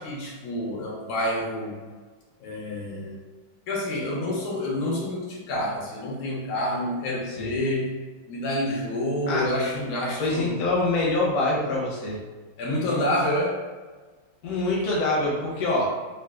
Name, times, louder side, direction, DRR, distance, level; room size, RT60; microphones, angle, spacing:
voice 1, 0.0-1.8 2.4-3.2 3.7-8.0 8.3-10.6 12.6-13.6, left 1 dB, 80° left, -3 dB, 1.5 m, -28 dB
voice 2, 10.2-12.2 14.4-15.9, left 2 dB, 55° left, -4 dB, 1.0 m, -25 dB
4.0 x 2.4 x 2.3 m, 1.3 s
omnidirectional pair, 2.4 m